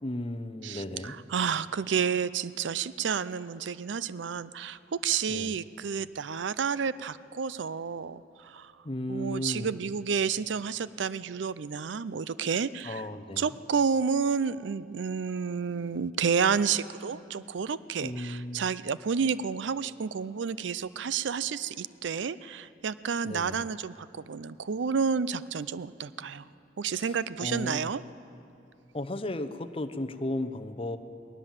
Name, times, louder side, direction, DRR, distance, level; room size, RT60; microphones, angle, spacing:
voice 1, 0.0-1.2 5.3-5.5 8.8-9.8 12.8-13.5 18.0-18.6 23.2-23.7 26.9-27.9 28.9-31.0, left 1 dB, 30° left, 9 dB, 0.8 m, -35 dB
voice 2, 0.6-8.7 9.1-13.0 13.4-26.5 26.8-28.0, right 6 dB, 80° right, 17 dB, 0.5 m, -30 dB
20.0 x 18.5 x 7.4 m, 2.7 s
head